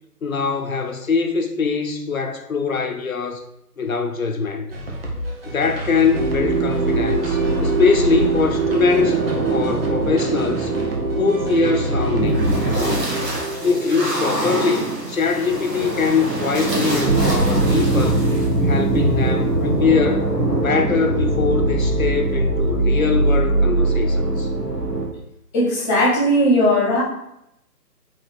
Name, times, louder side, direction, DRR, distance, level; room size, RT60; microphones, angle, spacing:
voice 1, 0.2-3.4 3.8-4.7 5.5-9.2 9.5-10.7 11.2-13.1 13.6-18.2 18.6-20.3 20.5-24.5, left 5 dB, 55° left, 1.0 m, -22 dB
sound 1, 4.7-13.4, equal, 35° right, 1.2 m, -30 dB
sound 2, 6.1-25.1, right 2 dB, 70° right, 2.4 m, -21 dB
voice 2, 25.5-27.0, equal, 10° left, 1.6 m, -17 dB
4.8 x 4.4 x 4.6 m
figure-of-eight pair, 145°, 49 cm